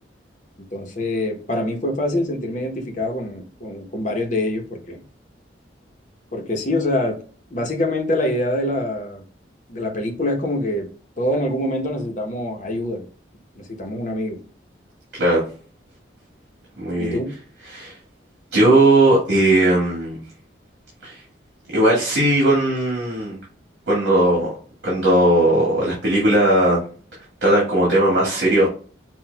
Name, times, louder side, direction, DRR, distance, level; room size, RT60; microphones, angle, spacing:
voice 1, 0.6-5.0 6.3-7.2 7.5-9.2 9.7-10.9 11.2-13.1 13.6-14.4 17.0-17.3, left 1 dB, 40° left, 2 dB, 0.9 m, -25 dB
voice 2, 16.8-17.2 17.7-17.9 18.5-20.2 21.0-21.2 21.7-23.4 23.9-24.5 24.8-26.8 27.4-28.7, right 1 dB, 70° right, -5 dB, 1.8 m, -17 dB
5.9 x 2.4 x 2.3 m, 0.40 s
head